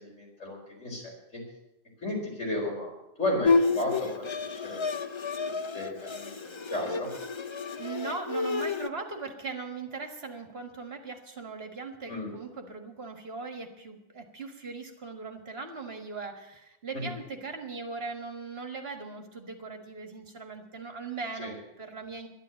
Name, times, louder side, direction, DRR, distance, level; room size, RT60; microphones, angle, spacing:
voice 1, 0.0-1.4 2.0-2.9 3.2-4.9 5.4-7.1 12.1-12.3 16.9-17.1 21.4-21.5, left 1 dB, 85° left, -2 dB, 5.1 m, -34 dB
Bowed string instrument, 3.4-8.9, left 4 dB, 35° left, 0.5 m, -30 dB
voice 2, 7.7-22.3, right 4 dB, 55° right, 5 dB, 1.9 m, -39 dB
11.5 x 11.0 x 8.9 m, 0.90 s
omnidirectional pair, 1.3 m